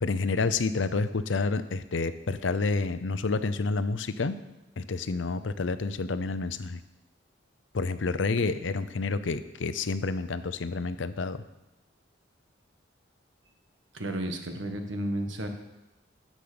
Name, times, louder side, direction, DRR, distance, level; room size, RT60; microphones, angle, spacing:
voice 1, 0.0-4.4 4.8-6.8 7.7-11.4, left 3 dB, 75° left, 12 dB, 0.6 m, -29 dB
voice 2, 13.9-15.5, right 1 dB, 75° right, 5 dB, 1.5 m, -32 dB
10.5 x 7.4 x 6.9 m, 0.97 s
head